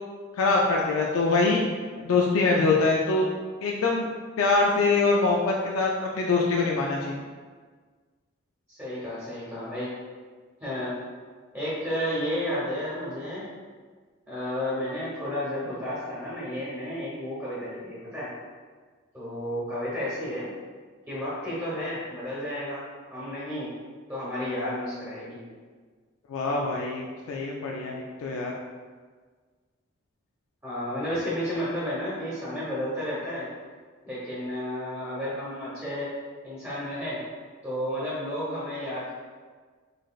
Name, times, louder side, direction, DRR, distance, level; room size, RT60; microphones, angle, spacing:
voice 1, 0.4-1.6 2.0-3.3 3.6-4.1 4.4-5.9 6.2-7.2 26.3-28.5, left 3 dB, 85° left, -1 dB, 0.4 m, -24 dB
voice 2, 8.7-9.9 10.6-10.9 11.5-13.5 14.3-18.3 19.1-20.5 21.1-22.8 23.1-23.7 24.1-25.4 30.6-33.5 34.0-36.1 36.4-37.2 37.6-39.1, left 1 dB, 15° right, -9 dB, 1.0 m, -32 dB
4.0 x 3.1 x 2.3 m, 1.5 s
head